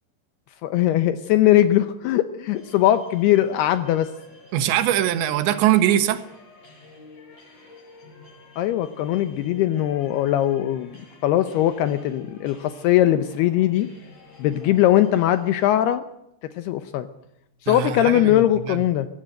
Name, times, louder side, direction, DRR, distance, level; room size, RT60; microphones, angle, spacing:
voice 1, 0.6-4.1 8.6-11.0 11.2-13.9 14.4-16.0 16.6-17.1 17.6-19.1, left 13 dB, 75° left, 10 dB, 2.7 m, -20 dB
sound 1, 2.5-15.8, left 3 dB, 40° left, 7.3 m, -49 dB
voice 2, 4.5-6.2 17.7-18.8, right 11 dB, 90° right, 11 dB, 3.6 m, -22 dB
22.0 x 17.0 x 7.8 m, 0.81 s
omnidirectional pair, 5.0 m